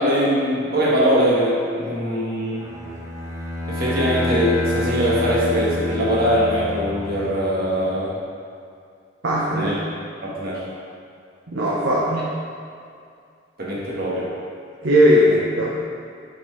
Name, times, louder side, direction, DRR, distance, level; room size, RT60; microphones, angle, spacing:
voice 1, 0.0-2.6 3.7-8.1 9.5-9.8 10.2-10.7 13.6-14.3, equal, 55° right, -6 dB, 1.4 m, -21 dB
Bowed string instrument, 2.6-7.4, left 2 dB, 15° right, 0.7 m, -27 dB
voice 2, 9.2-9.7 11.5-12.3 14.8-15.8, equal, 80° right, -6 dB, 0.8 m, -18 dB
7.7 x 4.3 x 3.2 m, 2.4 s
head